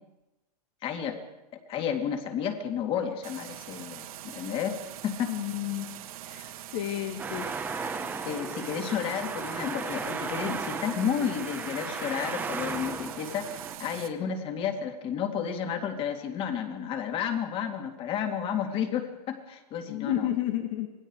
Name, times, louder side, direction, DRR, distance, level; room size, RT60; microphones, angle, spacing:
voice 1, 0.8-1.2 1.7-4.0 4.3-4.8 5.0-5.3 6.3-6.5 8.2-20.3, left 8 dB, 25° left, 5 dB, 2.6 m, -31 dB
sound 1, 3.2-14.1, right 13 dB, 60° right, 2.0 m, -43 dB
voice 2, 5.3-5.9 6.7-7.5 19.9-20.9, left 13 dB, 45° left, 5 dB, 2.1 m, -31 dB
Traffic noise roadway noise, 7.2-13.8, right 4 dB, 10° right, 1.4 m, -35 dB
27.5 x 19.5 x 4.8 m, 0.97 s
hypercardioid pair, 150°, 21 cm